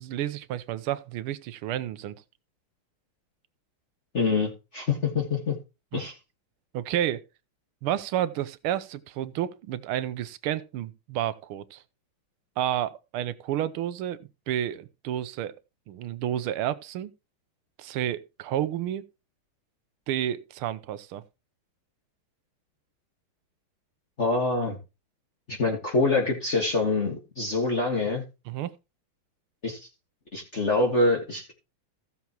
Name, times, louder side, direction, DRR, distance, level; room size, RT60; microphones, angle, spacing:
voice 1, 0.0-2.2 5.9-6.1 6.7-7.2 7.8-11.8 12.6-15.5 15.9-17.1 17.8-19.1 20.1-21.2 28.5-28.7, right 11 dB, 90° right, 1.6 m, -30 dB
voice 2, 4.1-5.5 5.9-6.1 24.2-24.8 25.5-28.2 29.6-29.9 30.3-31.5, left 3 dB, 35° left, 1.8 m, -25 dB
15.5 x 7.0 x 3.0 m
omnidirectional pair, 2.3 m